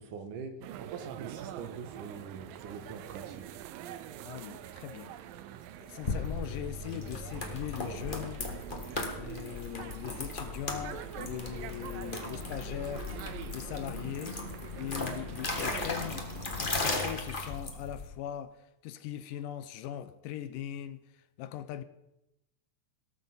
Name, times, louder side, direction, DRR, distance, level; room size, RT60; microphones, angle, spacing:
voice 1, 0.0-3.6 14.9-15.0, right 5 dB, 70° right, 2.7 m, -44 dB
sound 1, 0.6-17.1, right 11 dB, 90° right, 2.5 m, -45 dB
voice 2, 4.2-5.1 5.8-8.4 9.2-14.4 14.8-16.3 16.6-21.8, left 11 dB, 80° left, 2.2 m, -40 dB
sound 2, 6.0-18.1, left 3 dB, 50° left, 0.5 m, -37 dB
17.5 x 13.5 x 4.0 m
omnidirectional pair, 4.0 m